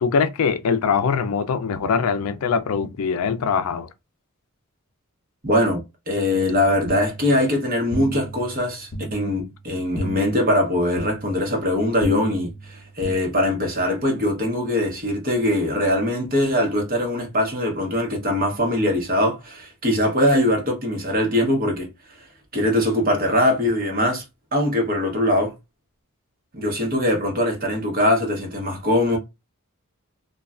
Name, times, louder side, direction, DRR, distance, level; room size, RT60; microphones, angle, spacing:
voice 1, 0.0-3.9, left 6 dB, 75° left, 0.4 m, -22 dB
voice 2, 5.4-21.9 22.5-24.2 24.5-25.5 26.5-29.2, left 1 dB, 40° right, 0.9 m, -22 dB
sound 1, 6.3-13.1, right 1 dB, 55° left, 0.7 m, -35 dB
3.1 x 2.2 x 2.3 m
head